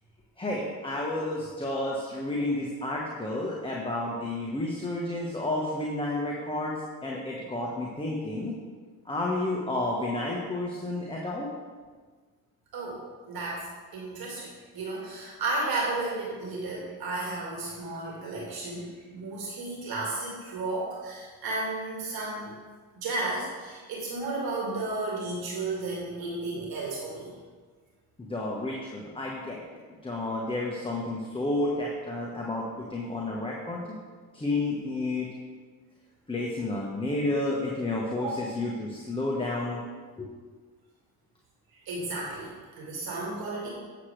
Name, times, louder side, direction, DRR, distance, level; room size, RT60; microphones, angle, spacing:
voice 1, 0.4-6.7 7.0-8.5 9.0-11.5 28.2-29.6 30.0-32.6 32.9-33.9 34.3-35.3 36.3-39.8 40.2-40.3, left 2 dB, 15° left, -3 dB, 1.3 m, -31 dB
voice 2, 13.3-13.7 13.9-14.5 14.7-22.5 23.0-27.3 38.2-38.3 41.9-42.5 42.8-43.7, right 2 dB, 65° right, -3 dB, 2.0 m, -33 dB
8.4 x 7.5 x 3.3 m, 1.5 s
cardioid pair, 85°, 39 cm